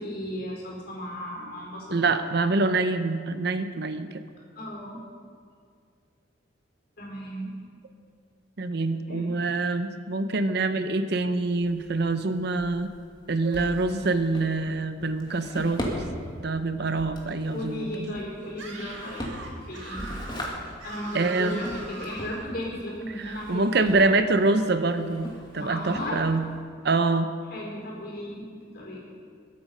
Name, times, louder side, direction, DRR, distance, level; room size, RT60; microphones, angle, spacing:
voice 1, 0.0-2.0 4.5-5.0 7.0-7.5 9.1-9.3 17.5-20.1 20.8-24.0 25.6-26.2 27.5-28.5 28.7-29.0, equal, 55° left, -3 dB, 4.6 m, -35 dB
voice 2, 1.9-4.2 8.6-12.9 13.3-15.9 16.4-18.1 21.1-21.6 23.1-25.3 25.5-26.4 26.8-27.3, right 3 dB, 60° right, 10 dB, 0.7 m, -25 dB
Drawer open or close, 11.4-26.6, equal, 25° left, 2.0 m, -40 dB
Screaming, 18.5-22.5, right 3 dB, 90° right, 2.1 m, -41 dB
21.0 x 8.6 x 5.5 m, 2.2 s
head